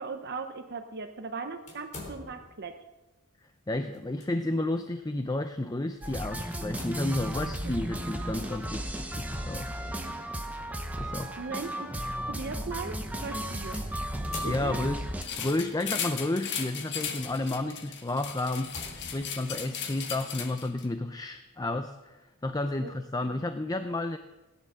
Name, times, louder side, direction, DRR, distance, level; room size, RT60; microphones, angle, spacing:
voice 1, 0.0-2.8 10.0-10.2 11.4-11.9 12.3-13.8 14.4-14.8 22.8-22.9 23.2-23.4, right 4 dB, 50° right, 7 dB, 0.7 m, -38 dB
sound 1, 1.7-2.7 3.9-4.3 4.8-4.9 6.5-7.4 9.5-9.8 10.6-10.7 13.7-15.1 16.0-16.5 17.1-17.3 17.8-17.9 18.5-19.7, left 2 dB, 35° left, 3.9 m, -45 dB
voice 2, 3.7-9.7 11.0-11.5 14.4-24.2, left 2 dB, 15° left, 8 dB, 0.5 m, -32 dB
sound 2, 6.0-15.2, right 1 dB, 5° right, 1.1 m, -34 dB
sound 3, 15.2-20.8, left 7 dB, 50° left, 1.5 m, -37 dB
18.0 x 10.0 x 6.3 m, 1.1 s
head